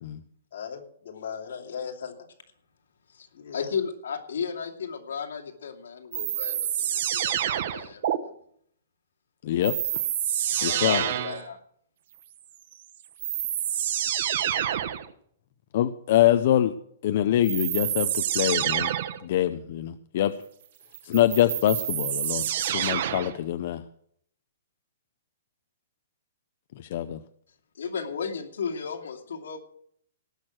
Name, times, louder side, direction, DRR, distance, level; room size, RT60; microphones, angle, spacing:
voice 1, 0.5-2.3 3.3-3.7, left 7 dB, 55° left, 1 dB, 3.1 m, -38 dB
voice 2, 3.5-8.2 10.6-11.6 27.8-29.6, left 6 dB, 90° left, 4 dB, 2.5 m, -34 dB
sound 1, 6.1-8.2 9.6-11.5 12.7-12.8 13.2-15.1 17.4-19.2 20.9-23.4, right 11 dB, 45° right, 1.1 m, -27 dB
voice 3, 9.4-10.0 10.6-11.0 15.7-16.7 17.0-18.9 19.2-20.3 21.0-22.4 22.7-23.8 26.8-27.2, left 12 dB, 40° left, 11 dB, 0.6 m, -24 dB
18.5 x 6.5 x 6.2 m, 0.65 s
hypercardioid pair, 175°, 0 cm